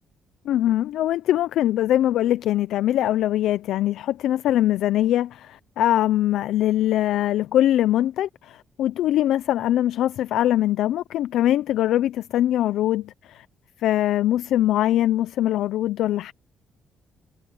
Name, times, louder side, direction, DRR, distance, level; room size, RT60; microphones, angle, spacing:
voice 1, 0.5-13.4 13.8-16.3, left 13 dB, 80° left, 0.5 m, -22 dB
cardioid pair, 90°, 0 cm